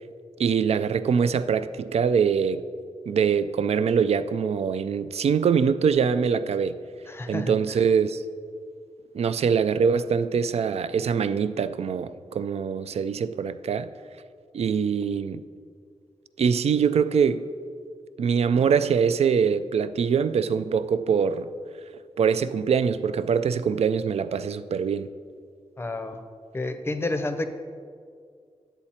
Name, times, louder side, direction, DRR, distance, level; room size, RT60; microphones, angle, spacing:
voice 1, 0.4-2.6 3.1-6.8 7.3-8.2 9.1-13.9 14.5-15.4 16.4-17.4 18.2-21.5 22.2-25.1, right 6 dB, 65° right, 0.4 m, -23 dB
voice 2, 7.1-7.5 25.8-26.2 26.5-27.5, left 2 dB, 20° left, 0.6 m, -29 dB
10.0 x 8.0 x 4.2 m
wide cardioid pair, 135°, 12 cm